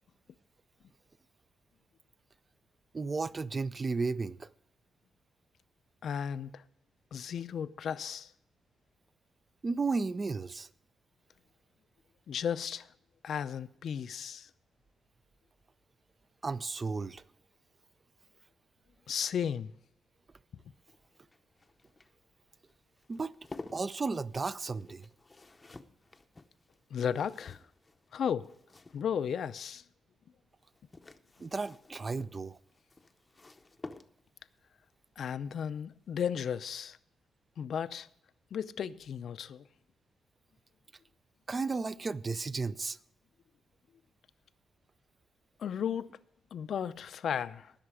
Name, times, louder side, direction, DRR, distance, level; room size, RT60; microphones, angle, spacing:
voice 1, 2.9-4.5 9.6-10.7 16.4-17.2 23.1-23.3 23.7-25.1 31.4-32.6 41.5-43.0, right 4 dB, 30° right, 0.4 m, -33 dB
voice 2, 6.0-6.6 7.1-8.3 12.3-12.9 13.2-14.5 19.1-19.7 26.9-27.6 28.1-28.5 28.9-29.8 35.2-37.0 37.6-38.1 38.5-39.6 45.6-46.1 46.5-47.7, left 8 dB, 60° left, 0.5 m, -34 dB
sound 1, 20.6-29.5 30.6-34.5 36.1-36.4 36.7-36.8, left 3 dB, 20° left, 0.7 m, -52 dB
19.0 x 6.7 x 4.8 m
cardioid pair, 120°, 0 cm